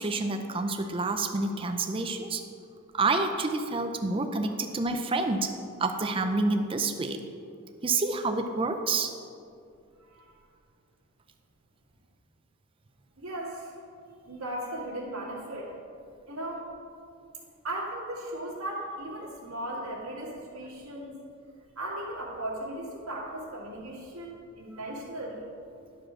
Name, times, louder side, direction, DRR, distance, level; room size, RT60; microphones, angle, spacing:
voice 1, 0.0-2.4 2.9-5.5 5.8-7.2 7.8-9.1, right 3 dB, 25° right, 6 dB, 0.5 m, -28 dB
voice 2, 10.0-10.4 13.2-13.7 14.3-15.7 16.3-16.7 17.6-21.2 21.8-25.4, right 1 dB, 85° right, -5 dB, 2.0 m, -37 dB
11.0 x 5.0 x 6.1 m, 2.4 s
head